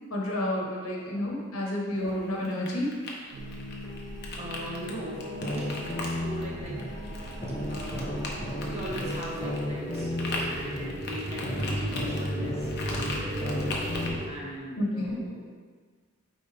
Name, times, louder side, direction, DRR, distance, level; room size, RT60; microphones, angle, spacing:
voice 1, 0.1-2.9 14.8-15.2, left 1 dB, 70° left, -2 dB, 1.4 m, -30 dB
voice 2, 0.9-1.2 4.3-6.8 7.7-8.3 8.6-10.1 10.5-15.5, equal, 30° right, -4 dB, 1.4 m, -40 dB
sound 1, 2.0-14.1, left 2 dB, 50° left, 1.0 m, -40 dB
sound 2, 3.3-14.3, right 1 dB, 55° right, 1.2 m, -36 dB
sound 3, 5.2-6.9 7.4-10.9 11.4-14.1, left 1 dB, 20° left, 1.0 m, -34 dB
8.6 x 4.1 x 3.5 m, 1.5 s
head